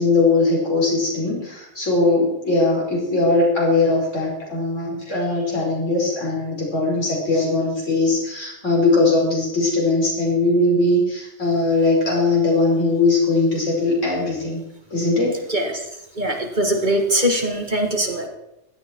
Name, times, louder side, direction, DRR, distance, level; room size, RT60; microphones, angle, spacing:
voice 1, 0.0-14.6 14.9-15.4, left 2 dB, 75° left, -3 dB, 5.6 m, -20 dB
voice 2, 15.5-15.8 16.2-18.3, right 1 dB, 40° right, 3 dB, 2.0 m, -21 dB
16.5 x 12.0 x 4.6 m, 0.85 s
omnidirectional pair, 1.3 m